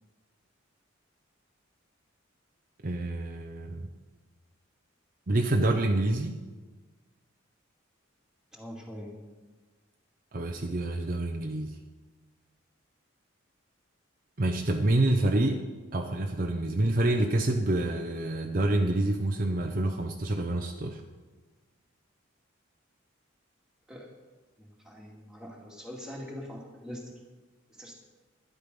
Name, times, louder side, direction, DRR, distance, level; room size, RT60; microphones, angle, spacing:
voice 1, 2.8-3.9 5.3-6.4 10.3-11.8 14.4-15.6 15.9-21.0, right 1 dB, 45° right, 3 dB, 0.8 m, -27 dB
voice 2, 8.5-9.1 23.9-24.1 24.6-27.2 27.7-27.9, equal, 5° right, -3 dB, 2.2 m, -43 dB
12.0 x 10.5 x 5.4 m, 1.3 s
head